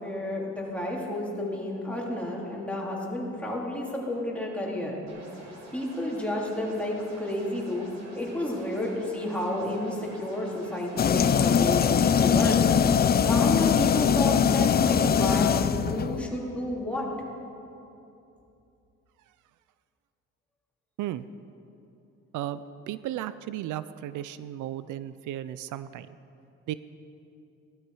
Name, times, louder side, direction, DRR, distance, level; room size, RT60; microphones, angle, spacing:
voice 1, 0.0-5.0 5.7-7.8 8.2-12.6 13.2-17.1, left 1 dB, 5° left, -3 dB, 3.0 m, -31 dB
sound 1, 5.1-12.5, right 2 dB, 65° right, 3.3 m, -48 dB
sound 2, 11.0-16.3, left 7 dB, 30° left, 0.4 m, -22 dB
voice 2, 22.3-26.1 26.7-26.8, right 12 dB, 80° right, 14 dB, 0.5 m, -35 dB
16.5 x 12.5 x 4.8 m, 2.8 s
cardioid pair, 90°, 30 cm